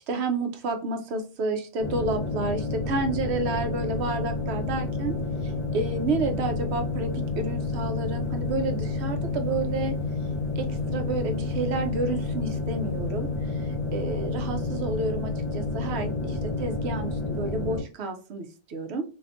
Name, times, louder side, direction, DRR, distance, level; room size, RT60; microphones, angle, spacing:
voice 1, 0.1-5.1 5.4-9.9 10.6-13.3 13.9-19.0, right 3 dB, 70° right, 6 dB, 0.9 m, -30 dB
sound 1, 1.8-17.8, left 3 dB, 35° left, 0.9 m, -30 dB
2.6 x 2.4 x 3.4 m, 0.33 s
omnidirectional pair, 1.2 m